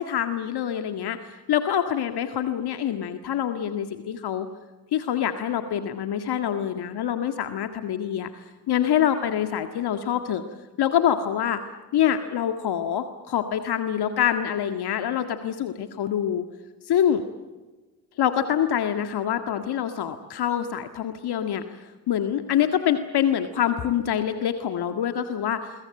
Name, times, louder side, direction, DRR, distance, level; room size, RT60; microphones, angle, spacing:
voice 1, 0.0-4.5 4.9-8.3 8.7-10.4 10.8-11.6 11.9-16.4 16.8-17.2 18.2-21.8 22.1-25.7, left 9 dB, 50° left, 8 dB, 1.9 m, -25 dB
27.0 x 22.5 x 7.7 m, 1.2 s
hypercardioid pair, 55°, 49 cm